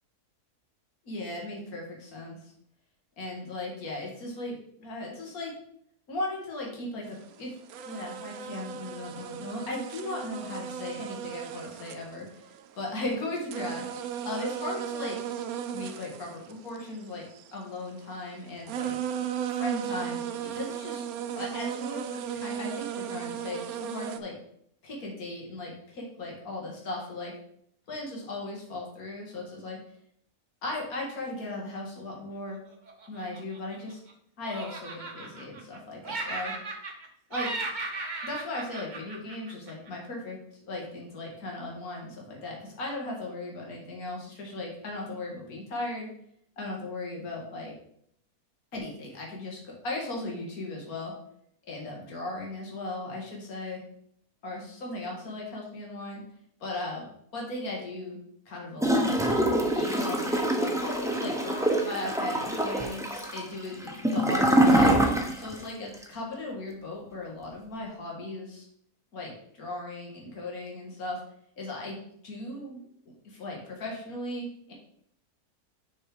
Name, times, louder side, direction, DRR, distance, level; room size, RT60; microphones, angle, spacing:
voice 1, 1.1-2.5 3.2-5.5 6.1-7.5 7.9-15.2 15.7-17.2 17.5-19.0 19.5-21.1 21.3-24.3 24.8-27.3 27.9-29.8 30.6-32.6 33.1-34.0 34.4-36.5 37.3-37.5 38.2-40.4 40.7-46.1 46.6-47.7 48.7-51.1 51.7-53.8 54.4-56.2 56.6-57.1 57.3-58.2 58.5-64.9 65.4-68.7 69.1-71.2 71.6-72.0 72.2-72.8 73.2-74.7, left 2 dB, 70° left, -1 dB, 2.2 m, -37 dB
sound 1, 7.2-7.3 7.7-12.7 13.1-17.5 18.4-18.5 18.7-24.2, right 9 dB, 75° right, 1.0 m, -36 dB
Laughter, 32.9-34.1 34.4-35.8 36.0-37.1 37.3-39.9, right 3 dB, 35° right, 0.9 m, -36 dB
Gurgling / Toilet flush, 58.8-65.6 65.9-66.0, right 1 dB, 5° right, 0.6 m, -25 dB
6.7 x 4.6 x 4.8 m, 0.69 s
omnidirectional pair, 1.6 m